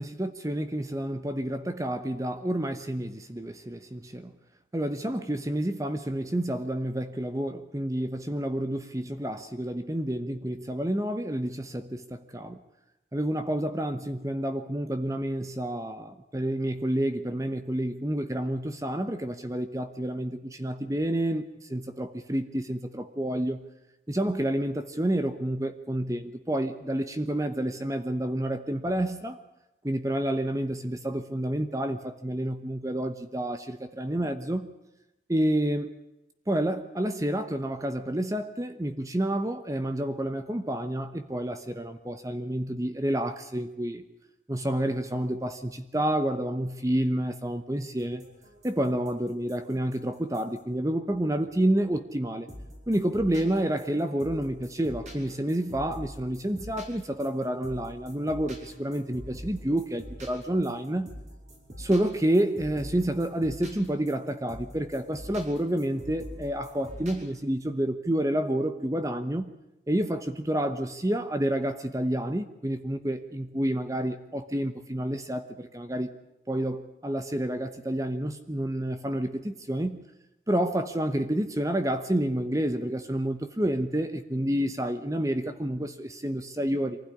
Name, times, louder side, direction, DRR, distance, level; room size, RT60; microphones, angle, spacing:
voice 1, 0.0-4.3 4.7-12.6 13.1-23.6 24.1-29.4 29.8-34.7 35.3-36.0 36.5-44.0 44.5-48.2 48.6-52.5 52.9-61.1 61.8-69.5 69.9-76.1 76.5-80.0 80.5-87.0, right 1 dB, 20° right, 9 dB, 1.0 m, -29 dB
sound 1, 48.0-51.9 52.5-67.2, equal, 40° right, 5.6 m, -46 dB
24.0 x 15.5 x 10.0 m, 0.93 s
head